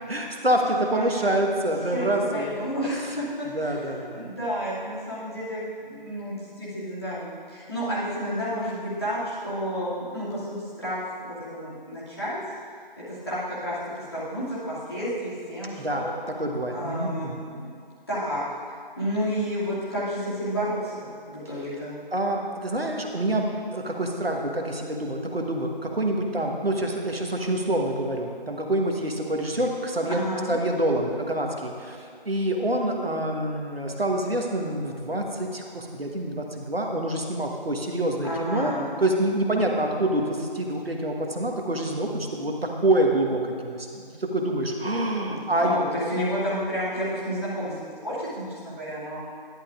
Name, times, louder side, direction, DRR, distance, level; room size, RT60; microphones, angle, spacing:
voice 1, 0.1-2.6 3.5-4.3 15.8-17.5 22.1-30.2 30.5-38.7 39.0-45.8, right 1 dB, 90° right, 2 dB, 1.3 m, -26 dB
voice 2, 0.7-1.1 1.9-2.1 2.3-12.4 13.0-13.8 14.1-16.1 16.7-17.7 18.1-22.0 30.1-30.5 38.2-38.9 39.5-39.6 45.2-49.2, equal, 25° left, -11 dB, 2.4 m, -31 dB
11.0 x 10.0 x 2.5 m, 2.2 s
figure-of-eight pair, 175°, 29 cm